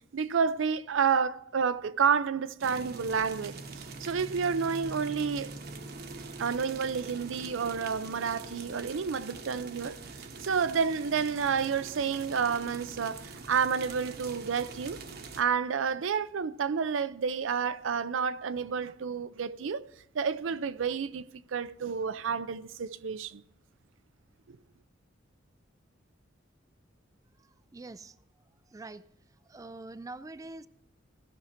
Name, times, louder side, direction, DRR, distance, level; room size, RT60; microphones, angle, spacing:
voice 1, 0.1-5.5 6.4-15.0 15.4-21.2 21.5-23.4 24.5-24.6, right 6 dB, 75° right, 0.5 m, -30 dB
sound 1, 2.6-15.4, right 3 dB, 55° right, 1.0 m, -44 dB
voice 2, 27.4-28.2 28.7-29.0 29.5-30.7, right 2 dB, 15° right, 0.3 m, -44 dB
16.5 x 6.3 x 4.3 m
head